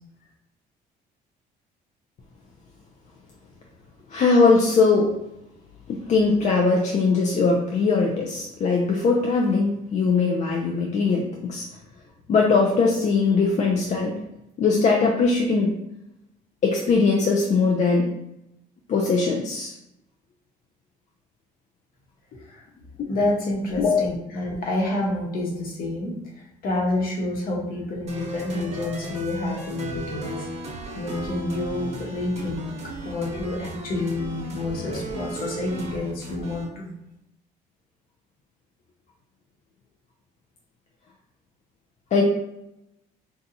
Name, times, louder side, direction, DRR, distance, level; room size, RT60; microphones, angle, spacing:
voice 1, 4.1-5.2 5.9-11.7 12.3-14.1 14.6-15.7 16.6-18.1 18.9-19.7 23.0-23.1 23.8-24.0 42.1-42.2, left 4 dB, 45° left, 0 dB, 0.5 m, -20 dB
voice 2, 23.1-30.7 30.9-32.7 33.0-36.9, left 2 dB, 60° left, -1 dB, 1.0 m, -28 dB
sound 1, 28.1-36.6, right 2 dB, 40° right, 0.9 m, -36 dB
4.0 x 2.3 x 2.7 m, 0.87 s
cardioid pair, 110°, 17 cm